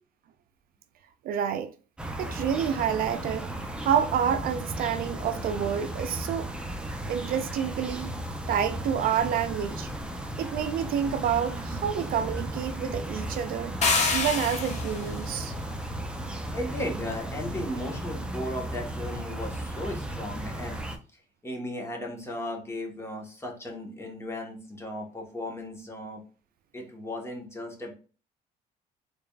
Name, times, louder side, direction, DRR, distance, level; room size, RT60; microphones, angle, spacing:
voice 1, 1.2-1.7 2.2-3.5 3.8-6.5 7.1-8.1 8.5-9.9 10.4-13.7 14.1-15.5, right 8 dB, 60° right, 0.4 m, -28 dB
sound 1, 2.0-21.0, right 1 dB, 5° right, 0.6 m, -35 dB
sound 2, 13.8-15.1, left 4 dB, 40° left, 1.1 m, -26 dB
voice 2, 16.3-20.8 21.4-26.2 26.7-27.9, left 1 dB, 15° left, 1.3 m, -36 dB
3.9 x 3.5 x 2.4 m
cardioid pair, 110°, 17 cm